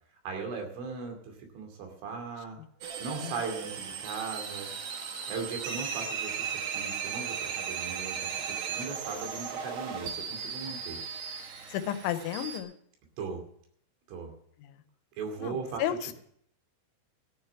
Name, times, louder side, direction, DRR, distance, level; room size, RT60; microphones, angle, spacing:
voice 1, 0.2-1.2 1.5-2.6 3.0-4.7 5.3-8.3 8.7-11.0 13.2-13.4 14.1-14.3 15.2-16.1, right 5 dB, 85° right, 4 dB, 5.0 m, -38 dB
sound 1, 2.8-12.6, right 7 dB, 65° right, 3.4 m, -36 dB
voice 2, 11.7-12.7 14.6-14.8 15.4-16.1, left 11 dB, 90° left, 10 dB, 3.2 m, -33 dB
14.0 x 6.9 x 9.0 m, 0.66 s
omnidirectional pair, 5.4 m